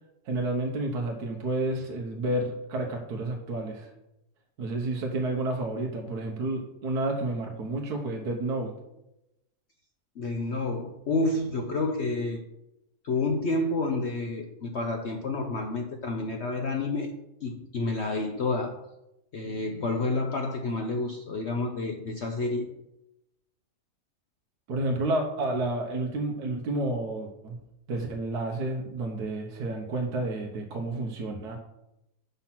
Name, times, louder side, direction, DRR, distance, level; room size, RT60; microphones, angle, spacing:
voice 1, 0.2-3.9 4.6-8.7 24.7-27.6 27.9-31.6, right 2 dB, 75° right, 1 dB, 1.6 m, -30 dB
voice 2, 10.2-12.4 13.0-17.1 17.4-18.7 19.3-22.7, left 2 dB, 55° left, 3 dB, 0.9 m, -29 dB
6.8 x 5.8 x 5.9 m, 0.88 s
omnidirectional pair, 1.7 m